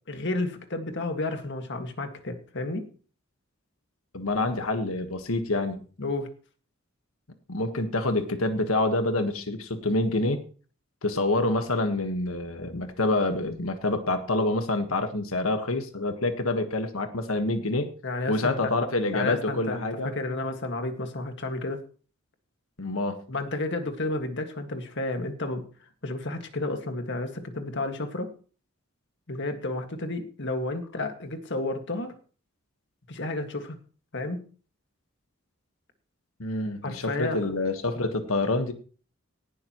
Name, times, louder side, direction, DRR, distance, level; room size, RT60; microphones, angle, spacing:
voice 1, 0.1-2.9 6.0-6.3 18.0-18.7 19.1-21.8 23.3-25.7 26.0-28.3 29.3-32.1 33.1-33.8 34.1-34.5 36.8-37.5, left 2 dB, 60° left, 6 dB, 1.9 m, -31 dB
voice 2, 4.1-5.8 7.5-10.4 11.0-17.9 18.3-20.1 22.8-23.2 36.4-38.7, left 2 dB, 90° left, 7 dB, 1.5 m, -27 dB
18.0 x 12.0 x 3.1 m, 0.40 s
head